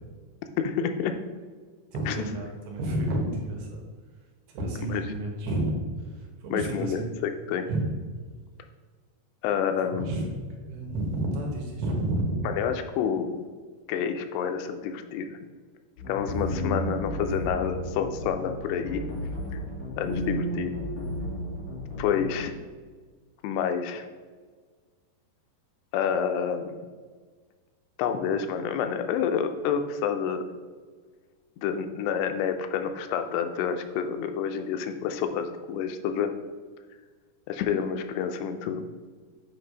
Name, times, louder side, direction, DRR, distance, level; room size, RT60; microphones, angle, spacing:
voice 1, 0.6-1.1 2.1-2.2 4.9-5.0 6.5-7.7 9.4-10.1 12.4-13.4 13.9-15.4 16.1-19.0 20.0-20.8 22.0-22.5 23.4-24.1 25.9-26.8 28.0-30.5 31.6-36.3 37.5-38.8, left 7 dB, 90° left, 7 dB, 2.7 m, -28 dB
voice 2, 1.9-3.8 4.5-5.7 6.4-7.1 7.7-7.9 9.9-10.2 10.6-12.4, right 1 dB, 80° right, 0 dB, 3.3 m, -30 dB
sound 1, 16.0-22.4, equal, 55° left, 3.6 m, -33 dB
7.9 x 3.3 x 5.3 m, 1.5 s
omnidirectional pair, 4.6 m